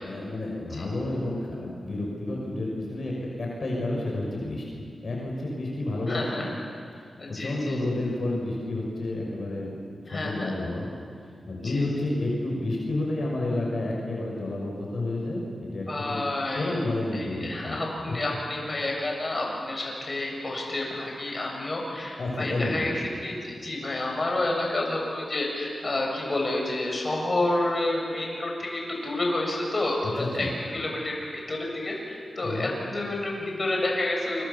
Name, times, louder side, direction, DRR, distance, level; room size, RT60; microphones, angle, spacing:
voice 1, 0.0-4.6 5.0-6.5 7.3-9.7 10.1-10.9 11.5-16.2 16.5-17.8 22.2-22.9 30.0-30.5 32.4-32.7, left 2 dB, 60° left, -2 dB, 6.2 m, -30 dB
voice 2, 6.1-6.5 7.2-7.8 10.1-10.6 11.6-11.9 15.9-16.8 17.1-34.4, left 2 dB, 35° left, -1 dB, 7.1 m, -29 dB
28.5 x 25.5 x 7.2 m, 2.2 s
wide cardioid pair, 90°, 0 cm